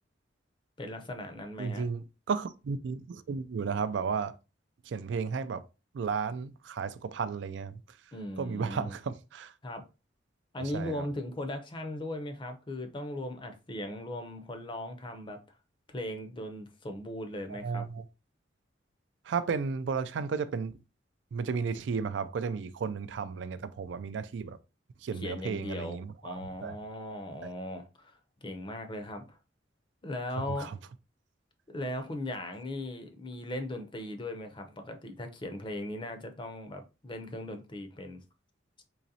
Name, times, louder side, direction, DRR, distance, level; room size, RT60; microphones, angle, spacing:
voice 1, 0.8-1.8 8.1-8.9 9.6-9.8 10.5-15.4 15.9-17.9 25.1-29.4 30.0-30.7 31.7-38.2, left 1 dB, 25° left, 0.6 m, -38 dB
voice 2, 1.6-4.3 4.9-5.6 5.9-7.8 8.4-9.5 10.6-11.1 17.5-18.0 19.3-20.7 21.3-24.6 25.0-26.8 30.5-30.8, right 5 dB, 70° right, 0.4 m, -33 dB
3.9 x 3.0 x 2.7 m
head